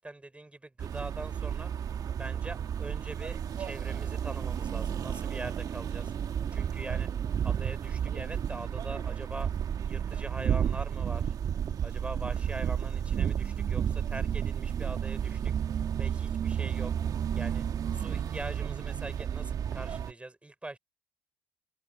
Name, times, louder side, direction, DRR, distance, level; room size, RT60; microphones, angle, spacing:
voice 1, 0.0-1.7 2.2-6.1 6.5-7.1 7.4-9.5 9.8-11.3 11.8-15.5 16.0-16.9 17.3-17.6 17.9-20.8, right 2 dB, 15° right, 5.8 m, -42 dB
sound 1, 0.8-20.1, right 8 dB, 55° right, 1.9 m, -32 dB
open air
hypercardioid pair, 60°, 8 cm